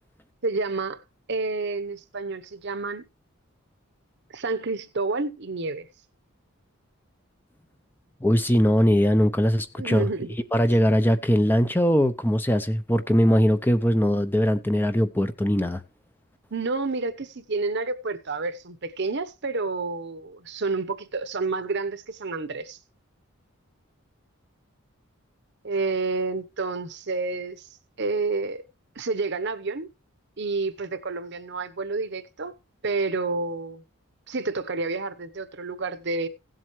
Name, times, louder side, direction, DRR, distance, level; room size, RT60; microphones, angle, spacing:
voice 1, 0.4-1.0 1.3-3.1 4.3-5.9 9.8-10.3 16.5-22.8 25.6-27.7 28.0-28.6 29.0-29.9 30.4-32.5 32.8-33.8 34.3-36.3, right 3 dB, 50° right, 0.9 m, -29 dB
voice 2, 8.2-10.1 10.5-15.8, equal, 10° left, 0.6 m, -21 dB
16.5 x 7.6 x 3.1 m
head